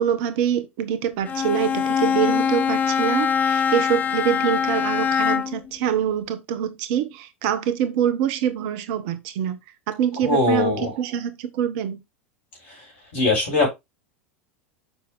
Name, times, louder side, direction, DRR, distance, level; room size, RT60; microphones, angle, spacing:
voice 1, 0.0-9.6 9.9-12.0, right 9 dB, 55° right, 1.1 m, -25 dB
Bowed string instrument, 1.2-5.7, left 7 dB, 25° left, 0.4 m, -23 dB
voice 2, 10.2-10.9 12.7-12.9 13.1-13.7, left 2 dB, 60° left, 6.0 m, -21 dB
6.9 x 5.8 x 3.6 m
figure-of-eight pair, 80°, 7 cm